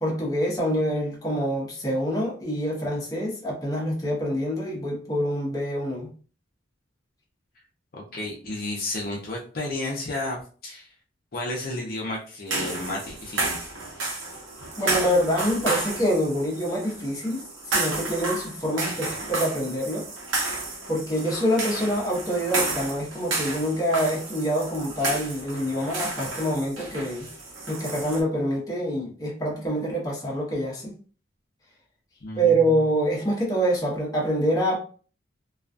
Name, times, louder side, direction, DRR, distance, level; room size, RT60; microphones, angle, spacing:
voice 1, 0.0-6.1 14.8-20.1 20.9-27.3 27.7-30.9 32.3-34.8, equal, 20° left, 0.7 m, -26 dB
voice 2, 7.9-10.9 11.3-13.7 32.2-32.8, left 2 dB, 50° left, 0.6 m, -32 dB
sound 1, 12.5-28.2, right 2 dB, 80° right, 0.8 m, -31 dB
2.3 x 2.2 x 2.5 m
head